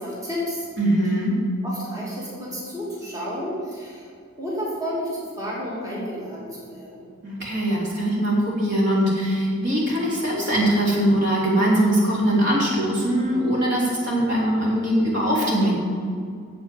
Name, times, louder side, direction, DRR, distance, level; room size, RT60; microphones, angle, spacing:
voice 1, 0.0-0.7 1.6-4.1 4.4-7.1, equal, 15° right, -7 dB, 2.5 m, -31 dB
voice 2, 0.8-1.3 7.2-15.7, right 1 dB, 55° right, -4 dB, 3.3 m, -21 dB
8.9 x 7.9 x 7.6 m, 2.2 s
head